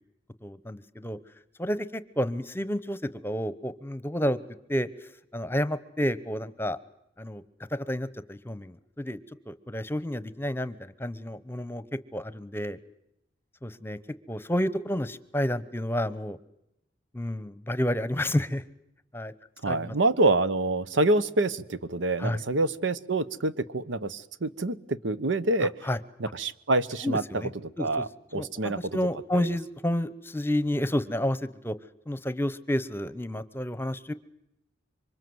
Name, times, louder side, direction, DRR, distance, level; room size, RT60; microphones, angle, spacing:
voice 1, 0.4-1.2 1.6-4.4 4.7-4.9 5.3-6.8 7.2-7.4 7.7-9.2 9.5-11.8 12.1-12.8 13.6-14.0 14.3-16.4 17.1-18.6 19.1-19.3 19.7-19.9 22.2-22.4 25.8-26.0 27.0-27.5 27.8-28.1 28.3-31.7 32.1-34.1, left 1 dB, 10° left, 15 dB, 0.9 m, -30 dB
voice 2, 19.6-25.9 26.2-28.8 29.3-29.5, right 2 dB, 90° right, 15 dB, 1.0 m, -27 dB
26.5 x 24.5 x 7.9 m, 0.84 s
head